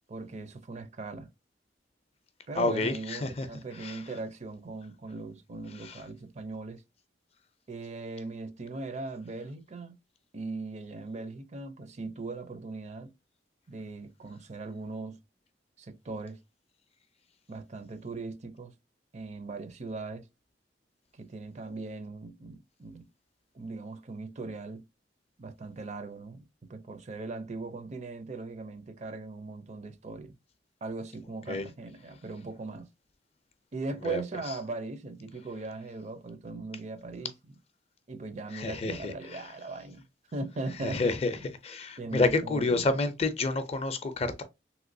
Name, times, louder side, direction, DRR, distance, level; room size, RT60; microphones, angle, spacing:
voice 1, 0.1-1.3 2.5-6.8 7.7-10.0 10.3-13.1 13.7-15.2 15.8-16.4 17.5-18.7 19.1-20.2 21.1-23.1 23.5-24.8 25.4-26.4 26.7-30.4 30.8-32.9 33.7-37.5 38.1-40.0 40.3-41.5 42.0-43.0, right 3 dB, 40° right, 0.5 m, -39 dB
voice 2, 2.6-3.5 3.8-4.0 5.8-5.9 31.5-31.7 34.0-34.2 38.5-39.1 40.8-44.4, left 3 dB, 35° left, 0.5 m, -29 dB
3.2 x 3.0 x 2.6 m
head